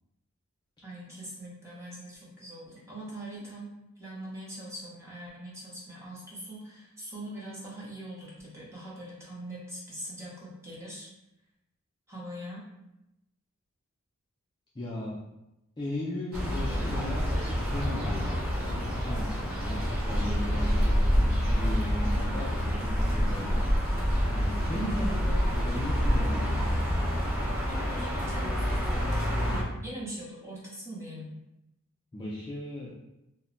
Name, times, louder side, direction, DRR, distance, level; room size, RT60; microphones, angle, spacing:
voice 1, 0.8-3.7 4.0-11.1 12.1-12.6 24.7-25.4 27.7-31.4, right 1 dB, 10° right, -7 dB, 0.7 m, -42 dB
voice 2, 14.7-15.2 15.8-23.7 24.3-26.7 32.1-32.9, left 1 dB, 20° left, -7 dB, 0.3 m, -37 dB
sound 1, 16.3-29.6, equal, 45° right, 0.8 m, -27 dB
2.1 x 2.1 x 3.7 m, 0.90 s
head